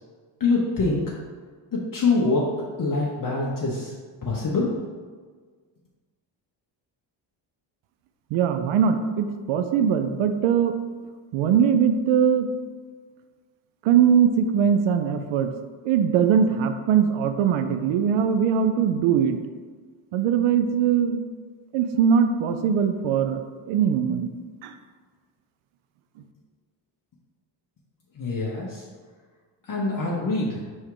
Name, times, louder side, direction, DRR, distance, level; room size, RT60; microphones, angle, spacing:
voice 1, 0.4-1.0 1.7-2.5 2.8-3.9 4.2-4.7 28.1-28.8 29.7-30.6, left 3 dB, 45° left, -4 dB, 1.1 m, -24 dB
voice 2, 8.3-10.7 11.3-12.5 13.8-15.5 15.8-19.4 20.1-21.2 21.7-23.4 23.7-24.3 24.6-24.7, right 7 dB, 90° right, 8 dB, 0.6 m, -21 dB
5.4 x 3.5 x 4.9 m, 1.5 s
cardioid pair, 95°, 47 cm